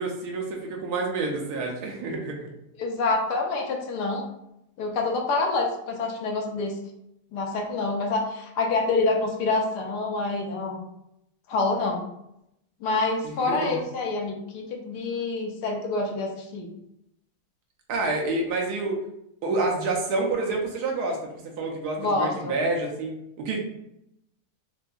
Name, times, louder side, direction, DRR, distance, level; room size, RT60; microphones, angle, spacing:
voice 1, 0.0-2.5 13.2-13.8 17.9-18.9 19.4-21.2 21.6-23.1 23.4-23.6, right 3 dB, 75° right, 0 dB, 1.3 m, -28 dB
voice 2, 2.8-4.2 4.8-6.8 7.3-10.8 11.5-12.0 12.8-16.7 22.0-22.5, left 3 dB, 85° left, 1 dB, 1.2 m, -27 dB
3.8 x 2.5 x 2.3 m, 0.81 s
omnidirectional pair, 1.7 m